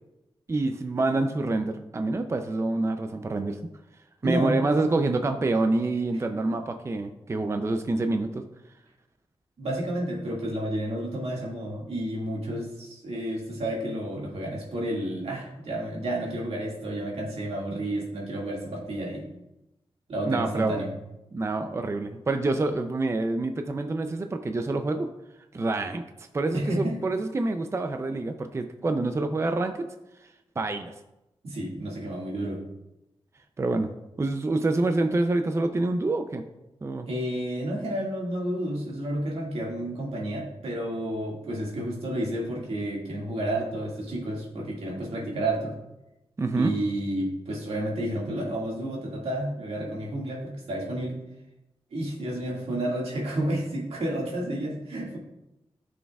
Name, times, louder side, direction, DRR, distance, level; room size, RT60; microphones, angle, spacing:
voice 1, 0.5-3.6 4.2-8.4 20.2-20.8 21.3-25.1 25.5-26.0 26.3-29.9 30.6-30.9 33.6-33.9 34.2-36.4 36.8-37.1 46.4-46.7, right 2 dB, 30° right, 7 dB, 0.4 m, -27 dB
voice 2, 4.2-4.6 9.6-19.3 20.1-20.9 26.5-27.0 31.4-32.6 37.1-45.7 46.5-51.2 51.9-55.2, right 1 dB, 85° right, -2 dB, 2.0 m, -31 dB
12.5 x 6.3 x 2.3 m, 0.93 s
wide cardioid pair, 125°, 10 cm